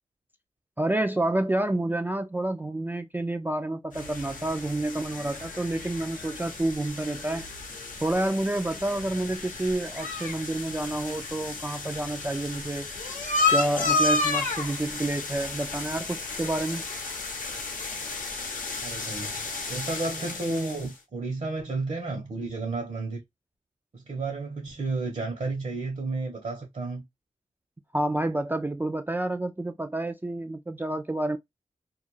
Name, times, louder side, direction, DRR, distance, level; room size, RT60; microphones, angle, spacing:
voice 1, 0.8-7.5 8.0-12.9 13.5-16.8 27.9-31.4, right 1 dB, 15° right, 0.3 m, -29 dB
sound 1, 3.9-20.9, left 3 dB, 85° left, 0.7 m, -32 dB
voice 2, 18.8-19.4 19.7-23.2 23.9-27.0, right 3 dB, 60° right, 0.8 m, -32 dB
2.3 x 2.1 x 3.0 m
cardioid pair, 45°, 13 cm